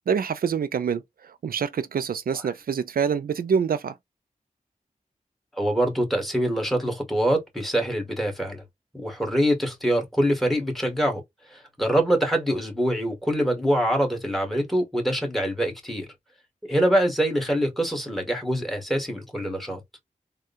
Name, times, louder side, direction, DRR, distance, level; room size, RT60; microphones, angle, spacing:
voice 1, 0.0-3.9, right 7 dB, 85° right, 0.4 m, -26 dB
voice 2, 5.6-8.6 8.9-11.2 11.5-16.1 16.7-19.8, equal, ahead, 1.8 m, -24 dB
3.6 x 2.2 x 2.5 m
wide cardioid pair, 70°, 15 cm